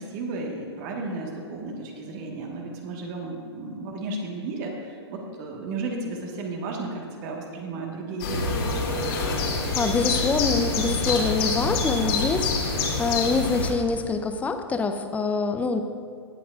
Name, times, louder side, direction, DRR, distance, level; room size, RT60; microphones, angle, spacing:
voice 1, 0.0-8.6, right 3 dB, 40° right, 0 dB, 1.6 m, -33 dB
sound 1, 8.2-13.7, left 3 dB, 55° left, 2.7 m, -26 dB
voice 2, 9.4-12.5 12.8-15.8, left 4 dB, 10° left, 7 dB, 0.6 m, -25 dB
18.0 x 7.7 x 2.5 m, 2.2 s
figure-of-eight pair, 120°, 15 cm